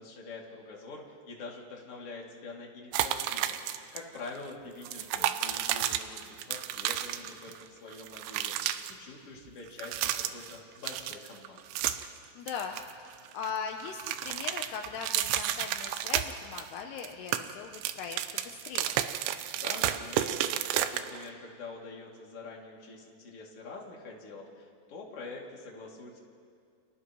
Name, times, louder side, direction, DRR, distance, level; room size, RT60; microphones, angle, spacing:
voice 1, 0.0-3.6 3.9-11.6 19.6-26.2, left 3 dB, 40° left, -3 dB, 3.0 m, -45 dB
sound 1, 2.9-4.0 4.2-4.4 4.8-7.6 7.9-8.9 9.7-10.6 10.8-12.2 12.5-13.5 13.8-16.7 17.0-21.3, right 12 dB, 90° right, 3.0 m, -32 dB
voice 2, 5.0-5.4 12.4-19.0, left 6 dB, 75° left, 3 dB, 2.7 m, -40 dB
29.5 x 29.5 x 3.1 m, 2.3 s
omnidirectional pair, 5.0 m